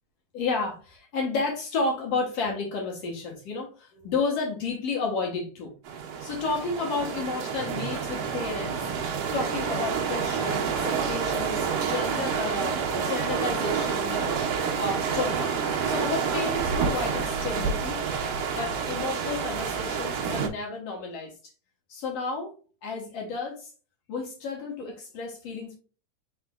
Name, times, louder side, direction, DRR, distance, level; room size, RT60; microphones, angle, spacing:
voice 1, 0.3-5.7 6.2-8.8 9.3-14.4 14.8-15.5 15.8-18.0 18.6-21.3 21.9-22.5 22.8-23.7 24.1-25.8, left 4 dB, 60° left, 1.8 m, -31 dB
sound 1, 5.8-20.5, right 6 dB, 85° right, 1.3 m, -28 dB
4.7 x 4.3 x 2.3 m
omnidirectional pair, 3.8 m